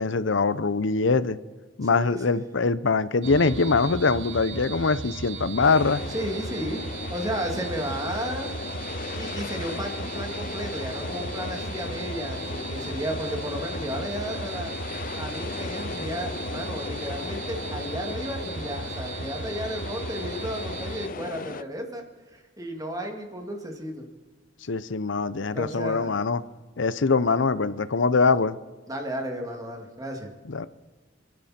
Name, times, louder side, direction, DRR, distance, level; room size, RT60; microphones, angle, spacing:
voice 1, 0.0-1.4 1.8-6.0 24.7-26.4 26.8-28.6 30.5-30.7, left 4 dB, 90° left, 16 dB, 0.7 m, -23 dB
voice 2, 1.9-2.4 6.1-6.8 7.1-8.5 9.0-14.7 15.1-22.0 22.3-24.1 25.5-26.1 28.9-30.3, equal, 20° right, 2 dB, 2.5 m, -33 dB
sound 1, 3.2-21.1, right 4 dB, 80° right, 0.9 m, -37 dB
sound 2, 5.6-21.6, left 4 dB, 45° left, 0.5 m, -36 dB
28.5 x 11.0 x 4.4 m, 1.3 s
head